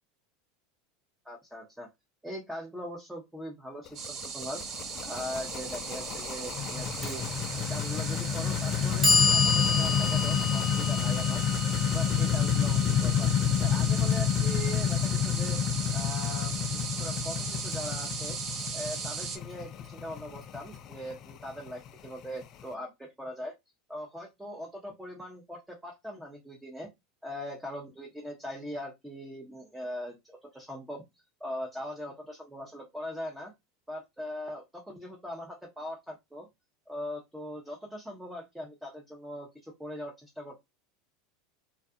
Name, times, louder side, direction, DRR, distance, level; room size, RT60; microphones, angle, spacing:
voice 1, 1.2-1.9 2.2-4.6 5.0-7.2 7.6-11.4 11.9-13.3 13.6-15.6 15.9-18.4 18.7-23.5 23.9-26.9 27.2-31.0 31.4-33.5 33.9-36.5 36.9-40.6, equal, 5° right, -1 dB, 0.8 m, -40 dB
sound 1, 3.9-22.6, left 8 dB, 45° left, 0.3 m, -29 dB
sound 2, 3.9-19.4, right 6 dB, 45° right, 0.5 m, -38 dB
Clock, 7.0-7.1 8.1-8.2 8.7-14.8, left 3 dB, 25° right, 1.1 m, -30 dB
2.6 x 2.3 x 2.3 m, 0.19 s
hypercardioid pair, 90°, 0 cm